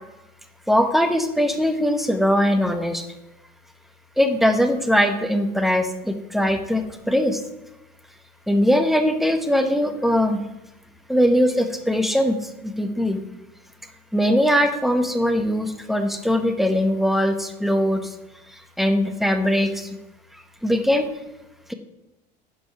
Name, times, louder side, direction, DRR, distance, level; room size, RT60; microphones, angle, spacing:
voice 1, 0.7-3.1 4.2-7.4 8.5-10.4 11.1-13.2 14.1-18.1 18.5-20.0 20.3-21.1, equal, ahead, 7 dB, 1.2 m, -21 dB
10.0 x 5.3 x 5.8 m, 0.98 s
hypercardioid pair, 85°, 21 cm